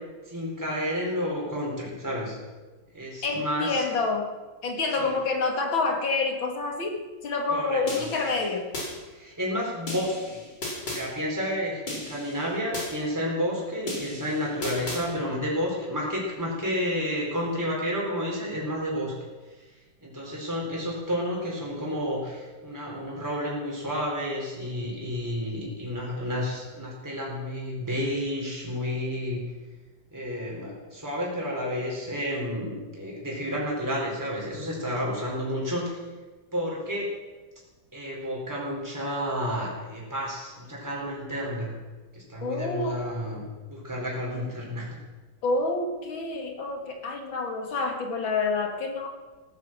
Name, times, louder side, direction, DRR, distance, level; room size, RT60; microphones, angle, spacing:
voice 1, 0.2-2.4 2.9-3.8 5.0-5.1 7.5-8.1 9.1-10.4 10.8-19.1 19.6-19.7 20.0-29.4 30.1-36.0 36.5-37.1 37.9-41.7 42.1-44.9, equal, 10° right, -4 dB, 4.4 m, -31 dB
voice 2, 3.2-4.3 4.6-8.7 42.4-43.1 45.4-49.1, left 3 dB, 75° left, 4 dB, 2.8 m, -28 dB
sound 1, 7.9-8.9 9.9-11.0 11.9-12.9 13.9-15.0, left 2 dB, 55° left, 5.1 m, -35 dB
16.5 x 11.5 x 7.5 m, 1.3 s
omnidirectional pair, 2.2 m